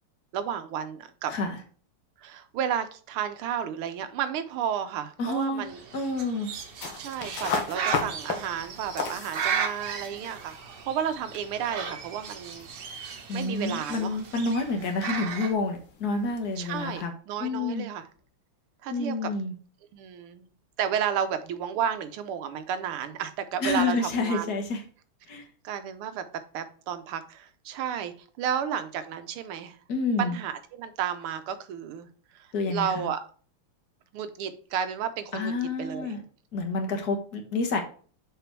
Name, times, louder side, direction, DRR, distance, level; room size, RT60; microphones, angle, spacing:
voice 1, 0.3-1.3 2.2-5.8 7.0-10.6 10.8-14.2 16.6-18.1 18.8-19.3 19.9-20.5 20.8-24.5 25.6-26.2 26.5-29.8 30.2-32.1 32.3-33.2 34.1-36.2, right 8 dB, 85° right, 10 dB, 1.7 m, -32 dB
voice 2, 5.2-5.6 5.9-6.5 13.3-17.1 17.4-17.9 18.9-19.5 23.6-24.8 25.3-25.4 29.9-30.4 32.5-33.1 35.3-36.2 36.5-37.8, left 3 dB, 50° left, 3 dB, 1.8 m, -28 dB
Bird, 5.6-15.5, right 7 dB, 60° right, 1.4 m, -36 dB
sound 1, 6.4-17.0, left 5 dB, 65° left, 1.9 m, -38 dB
6.8 x 4.9 x 4.6 m, 0.42 s
omnidirectional pair, 2.4 m